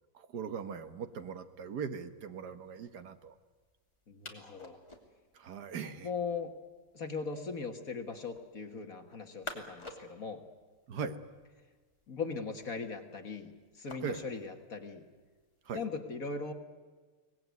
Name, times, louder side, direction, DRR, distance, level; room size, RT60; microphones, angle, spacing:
voice 1, 0.1-3.3 5.3-6.1 10.9-11.2 14.0-14.3 15.6-15.8, right 6 dB, 55° right, 10 dB, 1.6 m, -40 dB
sound 1, 0.6-16.0, left 2 dB, 15° left, 2.5 m, -54 dB
voice 2, 4.1-4.8 6.0-6.5 6.9-10.4 12.1-13.5 13.8-15.0 15.7-16.5, left 4 dB, 45° left, 5 dB, 1.8 m, -39 dB
24.5 x 19.0 x 9.3 m, 1.4 s
omnidirectional pair, 2.3 m